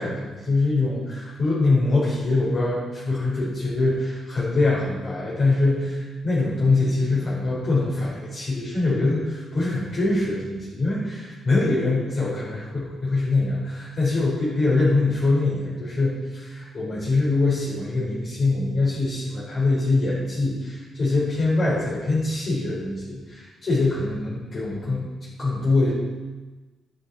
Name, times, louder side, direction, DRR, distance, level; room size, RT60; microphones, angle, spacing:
voice 1, 0.0-25.1 25.4-25.9, left 2 dB, 35° left, -7 dB, 4.7 m, -23 dB
11.5 x 11.5 x 4.4 m, 1.2 s
cardioid pair, 140°, 0 cm